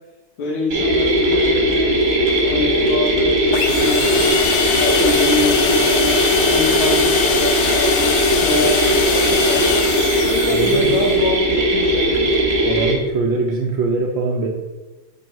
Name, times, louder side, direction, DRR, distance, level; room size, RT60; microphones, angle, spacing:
voice 1, 0.4-9.7 10.3-12.5, left 2 dB, 70° left, -4 dB, 1.8 m, -25 dB
sound 1, 0.7-12.9, right 1 dB, 35° right, 1.3 m, -18 dB
sound 2, 3.5-11.1, left 7 dB, 90° left, 1.5 m, -22 dB
voice 2, 10.5-10.9 12.6-14.5, right 3 dB, 70° right, 0 dB, 1.3 m, -22 dB
6.9 x 3.0 x 4.5 m, 1.1 s
omnidirectional pair, 2.4 m